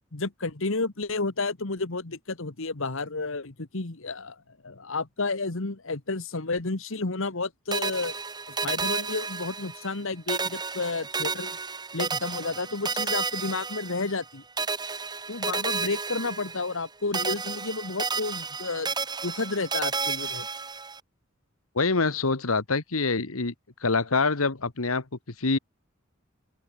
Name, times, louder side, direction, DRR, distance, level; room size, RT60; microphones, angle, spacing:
voice 1, 0.1-8.1 8.5-11.6 11.9-14.4 15.3-18.9 19.2-20.5, left 3 dB, 65° left, 1.6 m, -31 dB
sound 1, 7.7-10.0 10.3-14.3 14.6-16.9 17.1-21.0, right 4 dB, 20° right, 1.6 m, -32 dB
voice 2, 21.7-23.5 23.8-25.0 25.4-25.6, left 3 dB, 85° left, 1.6 m, -25 dB
open air
head